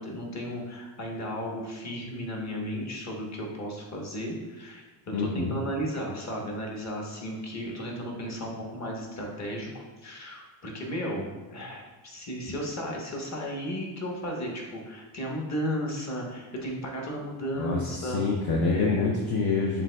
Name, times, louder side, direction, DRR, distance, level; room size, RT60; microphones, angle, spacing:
voice 1, 0.0-18.2 18.7-19.1, equal, 35° left, -1 dB, 1.1 m, -34 dB
voice 2, 5.1-5.6 17.6-19.8, left 4 dB, 55° left, -2 dB, 0.7 m, -26 dB
7.1 x 2.6 x 2.2 m, 1.2 s
cardioid pair, 75°, 46 cm